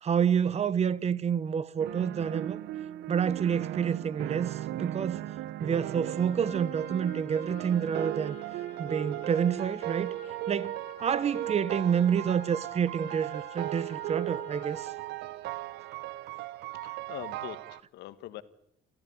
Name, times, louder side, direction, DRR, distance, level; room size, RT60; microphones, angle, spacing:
voice 1, 0.0-2.6 3.1-5.2 5.6-8.4 8.8-10.1 10.5-14.9, right 7 dB, 40° right, 1.0 m, -28 dB
sound 1, 1.8-17.8, right 14 dB, 80° right, 0.9 m, -37 dB
sound 2, 6.2-14.8, left 9 dB, 45° left, 1.4 m, -51 dB
voice 2, 16.7-18.4, left 14 dB, 80° left, 1.5 m, -43 dB
29.0 x 14.0 x 9.7 m
cardioid pair, 110°, 17 cm